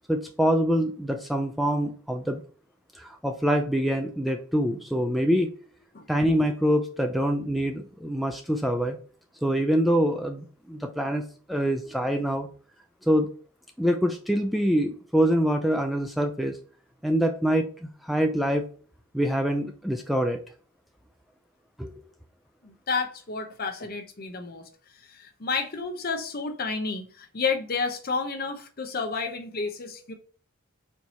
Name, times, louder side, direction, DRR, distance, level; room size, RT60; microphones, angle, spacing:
voice 1, 0.1-2.4 2.9-5.5 6.1-9.0 9.4-11.2 11.5-12.5 13.1-13.3 13.8-16.6 17.0-18.7 19.1-20.4 21.8-21.9, equal, ahead, 4 dB, 0.3 m, -25 dB
voice 2, 22.6-24.6 25.1-30.1, left 4 dB, 45° left, 6 dB, 0.7 m, -31 dB
4.5 x 2.7 x 4.2 m, 0.41 s
head